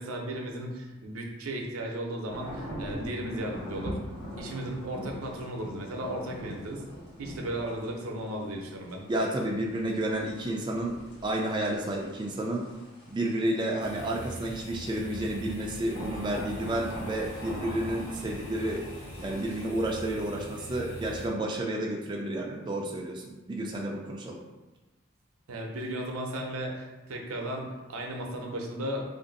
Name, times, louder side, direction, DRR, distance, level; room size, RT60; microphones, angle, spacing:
voice 1, 0.0-4.0 4.4-6.8 7.2-9.0 25.5-29.0, right 1 dB, 85° right, 1 dB, 0.6 m, -35 dB
sound 1, 2.3-19.7, equal, 90° left, 1.2 m, -43 dB
voice 2, 9.1-12.6 13.1-18.8 19.2-24.4, right 1 dB, 20° right, -1 dB, 0.3 m, -31 dB
sound 2, 13.8-21.3, right 1 dB, 55° left, 1.0 m, -42 dB
3.1 x 2.5 x 3.9 m, 1.1 s
head